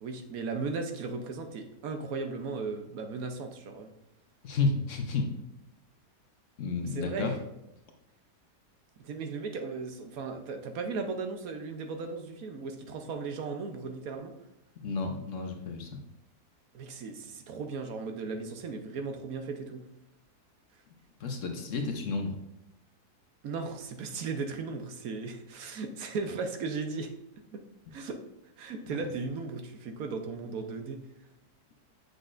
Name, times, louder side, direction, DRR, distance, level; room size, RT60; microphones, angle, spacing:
voice 1, 0.0-3.9 6.8-7.3 9.0-14.3 16.7-19.8 23.4-27.1 27.5-27.6 27.9-28.2 28.6-31.0, right 4 dB, 70° right, 5 dB, 1.2 m, -36 dB
voice 2, 4.4-5.3 6.6-7.4 14.8-15.9 21.2-22.4, left 3 dB, 60° left, 3 dB, 1.1 m, -31 dB
8.0 x 6.5 x 2.5 m, 0.87 s
omnidirectional pair, 1.6 m